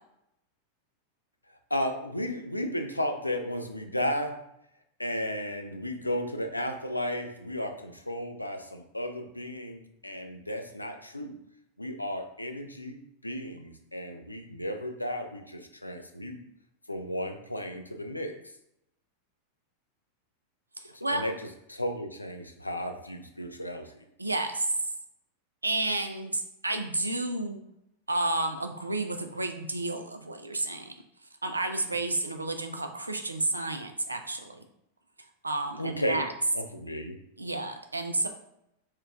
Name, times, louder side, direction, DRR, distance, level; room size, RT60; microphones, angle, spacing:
voice 1, 1.7-4.4 5.0-11.4 11.8-13.0 13.2-16.4 16.9-18.3 20.9-23.9 35.8-36.3 36.5-37.2, equal, 85° left, 5 dB, 0.4 m, -34 dB
voice 2, 24.2-24.7 25.6-27.6 28.1-30.9 31.4-34.6 35.4-36.3 37.4-38.3, right 2 dB, 80° right, 7 dB, 0.4 m, -31 dB
4.4 x 2.3 x 3.5 m, 0.79 s
figure-of-eight pair, 90°, 0 cm